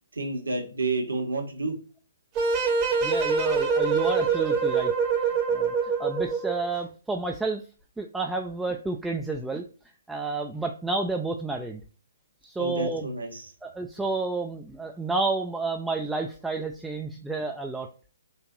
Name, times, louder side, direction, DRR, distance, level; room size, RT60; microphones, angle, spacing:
voice 1, 0.1-1.7 12.6-13.5, right 3 dB, 75° right, 3 dB, 1.2 m, -30 dB
sound 1, 2.4-6.7, right 5 dB, 25° right, 0.8 m, -24 dB
voice 2, 3.0-4.9 5.5-7.6 8.0-9.6 10.1-11.8 12.4-13.1 13.6-17.9, right 3 dB, 5° right, 2 dB, 0.3 m, -30 dB
4.6 x 2.5 x 2.5 m, 0.38 s
figure-of-eight pair, 135°, 0 cm